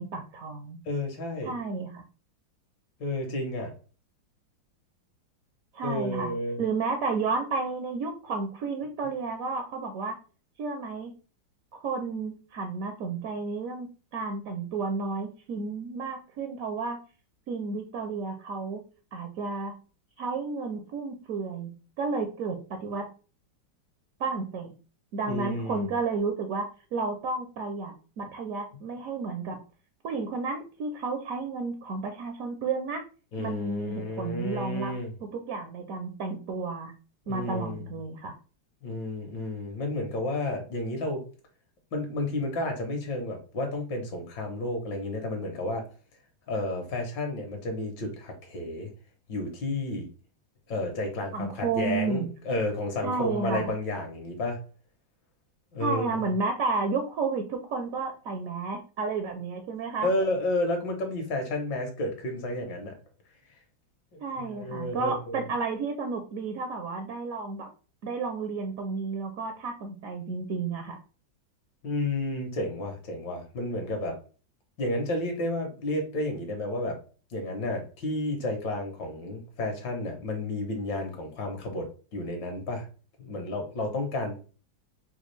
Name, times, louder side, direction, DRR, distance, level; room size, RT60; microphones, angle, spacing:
voice 1, 0.0-0.8 1.4-2.0 5.7-6.3 6.6-10.2 10.6-11.1 11.7-17.0 17.5-18.8 19.1-19.8 20.2-23.1 24.2-24.7 25.1-29.6 30.0-33.0 33.4-34.9 35.2-36.9 37.3-38.3 51.3-52.3 53.0-53.7 55.8-60.1 64.2-67.7 68.0-71.0, right 4 dB, 75° right, 5 dB, 0.8 m, -32 dB
voice 2, 0.9-1.6 3.0-3.7 5.8-6.6 25.3-25.9 33.3-35.1 37.3-37.9 38.8-41.2 41.9-45.9 46.5-48.9 49.3-50.1 50.7-54.6 55.7-56.3 60.0-62.9 64.1-65.4 71.8-74.2 74.8-77.0 77.3-82.9 83.2-84.4, left 1 dB, 70° left, 3 dB, 1.6 m, -31 dB
5.1 x 2.3 x 3.2 m, 0.36 s
omnidirectional pair, 2.1 m